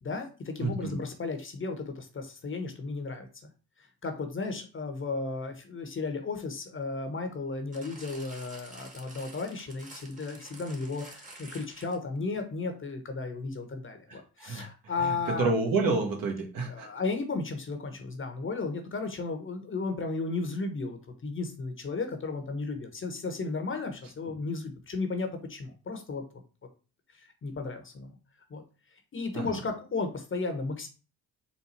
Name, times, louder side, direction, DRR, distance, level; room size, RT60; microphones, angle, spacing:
voice 1, 0.0-3.3 3.8-15.5 16.6-26.2 27.1-28.1 28.5-28.6 29.1-30.9, left 3 dB, 30° left, 5 dB, 0.9 m, -34 dB
voice 2, 0.6-1.0 14.1-14.7 15.0-16.9 29.3-29.6, right 3 dB, 55° right, 2 dB, 1.3 m, -29 dB
sound 1, 7.7-12.2 12.9-13.0, right 2 dB, 20° right, 1.2 m, -49 dB
4.1 x 2.2 x 4.3 m, 0.34 s
supercardioid pair, 80°, 40 cm